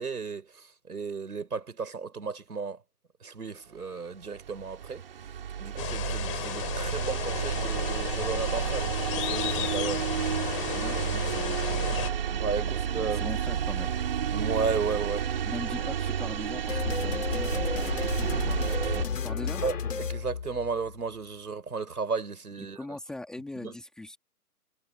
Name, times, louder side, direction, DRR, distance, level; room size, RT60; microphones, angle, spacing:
voice 1, 0.0-2.8 3.2-5.0 5.6-10.0 12.2-13.2 14.3-15.2 19.6-22.8 23.6-23.7, right 5 dB, 70° right, 6.3 m, -34 dB
sound 1, 4.1-19.1, right 8 dB, 35° right, 3.3 m, -31 dB
sound 2, 5.8-12.1, left 19 dB, 20° left, 5.9 m, -34 dB
voice 2, 10.7-11.9 12.2-12.8 13.1-14.0 15.4-19.6 22.6-24.2, left 2 dB, ahead, 2.3 m, -41 dB
sound 3, 16.7-21.0, left 6 dB, 50° left, 2.4 m, -32 dB
hypercardioid pair, 165°, 47 cm